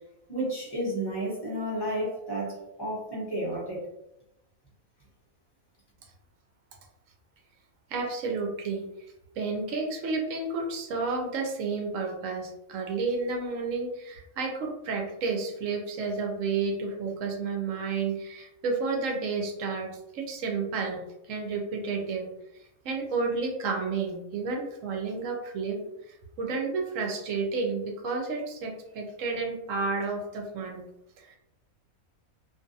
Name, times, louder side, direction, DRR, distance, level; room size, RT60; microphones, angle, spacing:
voice 1, 0.3-3.8, right 1 dB, 20° left, -5 dB, 0.7 m, -32 dB
voice 2, 7.9-8.9 9.3-21.0 21.3-22.3 22.8-25.8 26.1-30.8 31.2-31.4, right 4 dB, 70° right, 2 dB, 0.9 m, -31 dB
2.5 x 2.5 x 2.5 m, 0.86 s
omnidirectional pair, 1.5 m